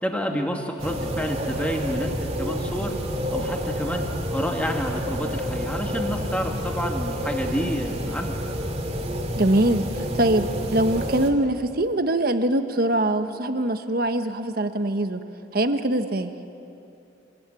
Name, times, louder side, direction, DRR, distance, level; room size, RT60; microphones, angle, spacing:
voice 1, 0.0-2.9 3.3-8.3, equal, 5° left, 2 dB, 2.3 m, -29 dB
sound 1, 0.8-11.3, equal, 35° right, 2.4 m, -29 dB
voice 2, 9.4-15.2 15.5-16.3, right 1 dB, 50° right, 8 dB, 1.2 m, -23 dB
25.0 x 21.0 x 9.2 m, 2.8 s
head